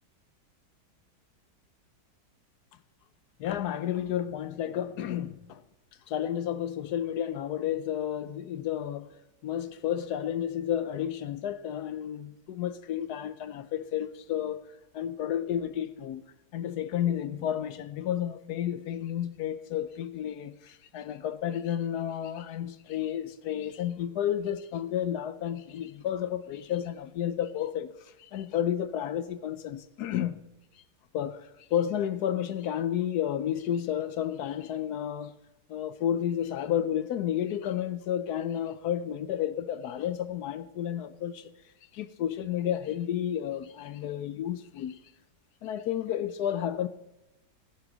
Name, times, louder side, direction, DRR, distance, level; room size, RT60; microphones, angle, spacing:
voice 1, 3.4-5.6 6.1-9.1 9.4-14.6 14.9-16.2 16.5-30.4 31.1-35.4 35.7-41.5 41.9-45.0 45.6-46.9, left 10 dB, 70° left, 1.1 m, -31 dB
15.5 x 11.0 x 3.9 m
omnidirectional pair, 1.9 m